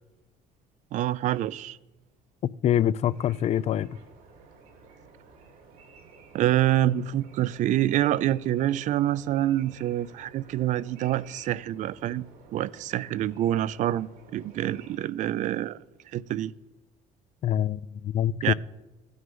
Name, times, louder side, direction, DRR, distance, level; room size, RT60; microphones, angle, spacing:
voice 1, 0.9-1.8 6.3-12.3 12.5-15.8 16.1-16.5 18.4-18.5, right 13 dB, 60° right, 0.4 m, -26 dB
voice 2, 2.6-3.9 17.4-18.5, left 11 dB, 45° left, 0.4 m, -25 dB
sound 1, 3.1-15.0, right 4 dB, 90° right, 2.5 m, -53 dB
15.0 x 9.4 x 5.4 m
cardioid pair, 125°, 15 cm